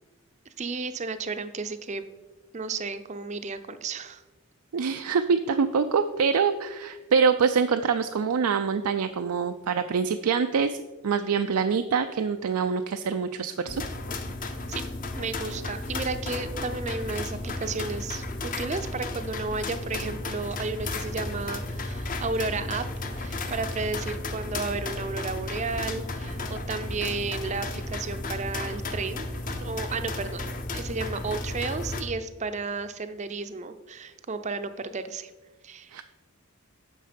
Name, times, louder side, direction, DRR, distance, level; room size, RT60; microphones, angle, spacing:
voice 1, 0.6-2.0 2.5-4.2 14.7-14.8 15.2-22.8 23.1-29.3 29.6-35.3 35.6-36.0, right 4 dB, 30° right, 10 dB, 0.5 m, -33 dB
voice 2, 4.7-13.8 35.9-36.0, right 5 dB, 85° right, 8 dB, 0.4 m, -25 dB
sound 1, 13.7-32.0, left 2 dB, 40° left, 0.8 m, -34 dB
9.5 x 6.3 x 5.1 m, 1.2 s
head